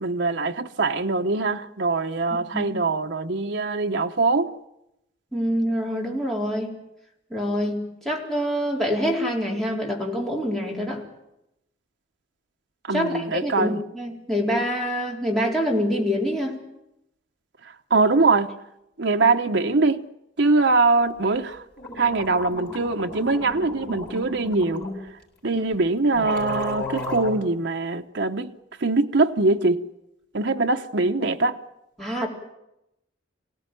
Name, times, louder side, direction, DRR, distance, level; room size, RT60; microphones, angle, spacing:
voice 1, 0.0-4.5 12.9-13.8 17.9-18.5 19.0-20.0 20.4-21.6 22.0-24.9 25.4-28.5 28.8-29.8 30.3-31.6, right 3 dB, 60° right, 0.9 m, -22 dB
voice 2, 2.3-2.8 5.3-6.7 7.3-11.0 12.9-16.6 25.5-25.6 32.0-32.3, equal, ahead, 4.1 m, -26 dB
sound 1, 21.5-21.6 21.8-25.0 25.7-25.8 26.1-27.3, left 1 dB, 55° left, 6.7 m, -33 dB
24.5 x 17.5 x 9.2 m
head